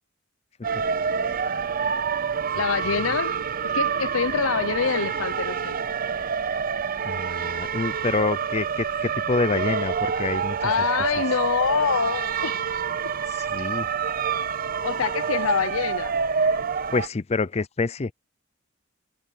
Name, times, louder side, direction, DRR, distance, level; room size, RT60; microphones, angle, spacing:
sound 1, 0.6-17.1, right 6 dB, 45° right, 0.7 m, -27 dB
voice 1, 2.5-5.8 10.6-12.6 13.0-13.2 14.8-16.2, left 6 dB, 90° left, 0.7 m, -25 dB
voice 2, 7.0-10.7 13.3-13.9 16.4-16.6 16.9-18.1, left 4 dB, 30° left, 0.5 m, -27 dB
head